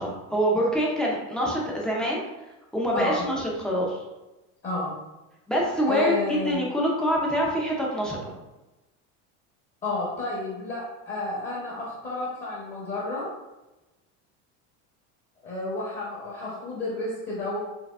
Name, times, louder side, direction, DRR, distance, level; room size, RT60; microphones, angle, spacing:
voice 1, 0.0-2.2 2.7-4.0 5.5-6.1 6.4-8.3, equal, ahead, -4 dB, 0.4 m, -25 dB
voice 2, 2.9-3.2 4.6-4.9 5.9-6.6 9.8-13.3 15.4-17.6, left 2 dB, 25° left, -6 dB, 0.8 m, -31 dB
4.7 x 2.5 x 2.3 m, 1.0 s
cardioid pair, 165°, 35 cm